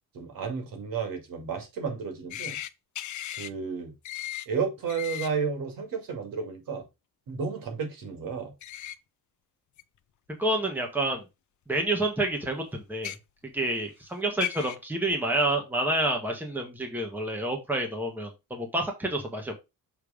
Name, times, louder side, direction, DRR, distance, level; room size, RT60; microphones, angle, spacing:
voice 1, 0.1-2.6 3.4-3.9 4.5-6.8 7.3-8.5, right 5 dB, 70° right, 2.3 m, -32 dB
sound 1, 2.3-2.7 3.0-3.5 4.0-4.5 4.9-5.3 8.6-9.0 9.8-9.9 11.1-11.2 12.9-13.2 14.0-14.1 14.4-14.8, left 13 dB, 55° left, 0.6 m, -35 dB
voice 2, 10.4-11.2 11.7-13.1 13.5-19.6, right 1 dB, 5° right, 1.4 m, -28 dB
6.9 x 3.3 x 5.0 m
cardioid pair, 160°, 35 cm